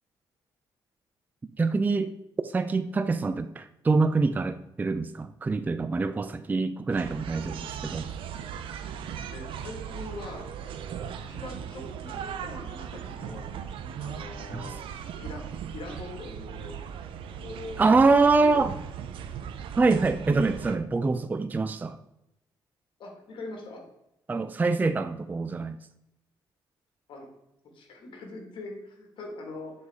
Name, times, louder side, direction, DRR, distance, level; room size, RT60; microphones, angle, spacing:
voice 1, 1.6-2.1 2.4-8.1 14.5-14.7 17.8-18.7 19.8-22.0 24.3-25.8, right 3 dB, 20° right, 10 dB, 0.3 m, -25 dB
sound 1, 6.9-20.8, right 8 dB, 80° right, 0.6 m, -38 dB
voice 2, 9.3-10.4 11.2-13.5 14.0-14.8 15.2-15.4 15.7-16.8 17.3-18.7 23.0-23.8 27.1-27.3 27.7-29.7, left 2 dB, 70° left, 2 dB, 1.8 m, -42 dB
6.9 x 4.1 x 3.6 m, 0.84 s
cardioid pair, 90°, 9 cm